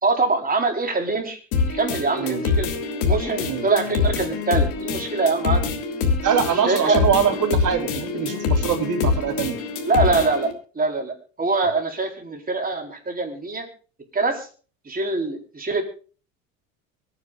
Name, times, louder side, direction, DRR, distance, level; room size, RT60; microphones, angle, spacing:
voice 1, 0.0-1.4 1.7-2.7 3.0-5.6 6.7-7.0 9.9-13.7 14.1-14.5 14.9-15.8, right 3 dB, 20° right, 3 dB, 4.2 m, -24 dB
sound 1, 1.5-10.5, left 4 dB, 80° left, 3.2 m, -25 dB
voice 2, 6.2-9.6, right 7 dB, 50° right, 3 dB, 4.0 m, -23 dB
25.0 x 9.8 x 2.5 m, 0.38 s
supercardioid pair, 90°, 40 cm